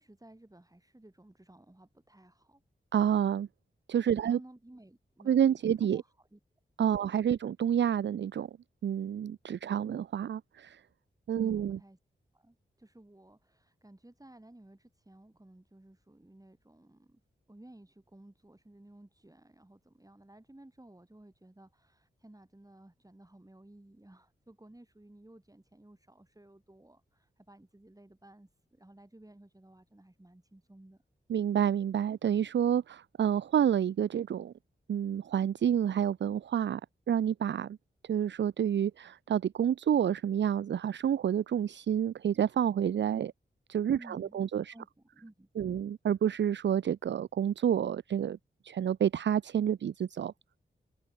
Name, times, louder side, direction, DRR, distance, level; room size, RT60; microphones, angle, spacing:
voice 1, 0.0-2.6 4.2-6.4 6.9-7.4 11.4-12.0 12.3-17.2 17.5-31.0 44.0-45.9, right 1 dB, 20° right, 7.1 m, -56 dB
voice 2, 2.9-3.5 3.9-4.4 5.3-6.0 6.8-8.5 8.8-10.8 11.3-11.8 31.3-34.5 34.9-36.8 37.1-37.8 38.1-43.3 43.7-44.7 45.6-48.4 48.6-50.3, right 9 dB, 65° right, 0.4 m, -29 dB
cardioid pair, 50°, 20 cm